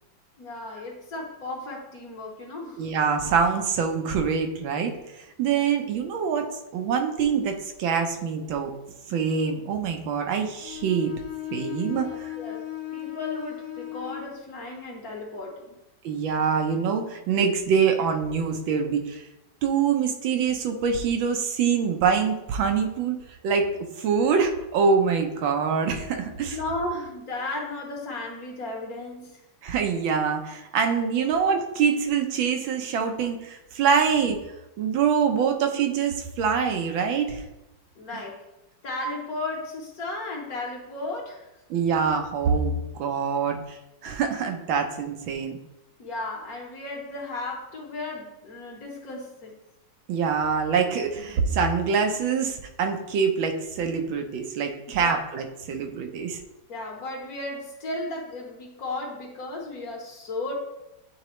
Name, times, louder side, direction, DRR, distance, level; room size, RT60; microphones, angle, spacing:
voice 1, 0.4-2.9 11.8-15.6 26.5-29.4 37.9-38.4 38.8-41.5 46.0-49.5 54.9-55.2 56.7-60.5, left 2 dB, 55° left, 0 dB, 1.4 m, -35 dB
voice 2, 2.8-4.9 5.4-6.5 6.7-8.7 9.1-11.1 11.5-12.3 16.0-19.2 19.6-23.2 23.4-23.7 24.0-26.6 29.6-34.4 34.8-37.5 38.1-38.2 41.7-45.6 50.1-56.4, right 6 dB, 85° right, 4 dB, 1.6 m, -25 dB
Bowed string instrument, 10.6-14.4, left 15 dB, 90° left, 1.4 m, -36 dB
9.7 x 3.8 x 3.1 m, 0.93 s
omnidirectional pair, 2.1 m